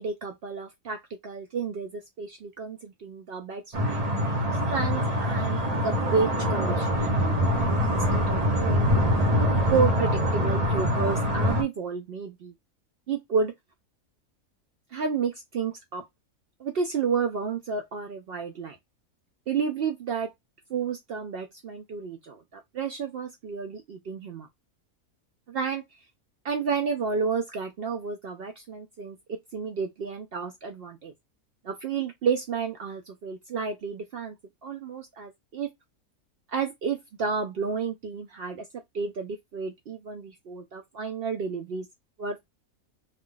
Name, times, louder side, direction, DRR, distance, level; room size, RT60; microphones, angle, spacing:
voice 1, 0.0-4.0 4.5-8.9 9.7-12.5 13.1-13.5 14.9-16.0 16.6-18.8 19.5-20.3 20.7-24.5 25.5-25.8 26.4-29.2 29.5-31.1 31.6-34.4 34.6-35.7 36.5-41.9 42.2-42.4, right 5 dB, 75° right, 0.5 m, -31 dB
sound 1, 3.7-11.6, equal, 30° right, 0.8 m, -24 dB
2.4 x 2.4 x 3.6 m
omnidirectional pair, 1.5 m